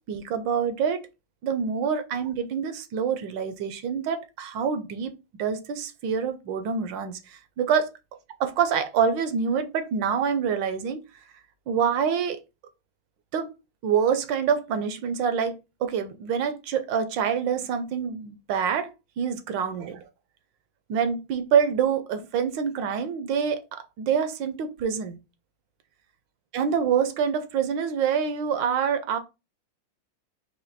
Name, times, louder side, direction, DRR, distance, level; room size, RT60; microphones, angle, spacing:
voice 1, 0.1-1.1 1.4-5.1 5.4-7.9 8.4-11.0 11.7-12.4 13.3-13.5 13.8-20.1 20.9-25.2 26.5-29.2, right 7 dB, 70° right, 1.3 m, -26 dB
5.1 x 2.5 x 4.0 m
omnidirectional pair, 2.2 m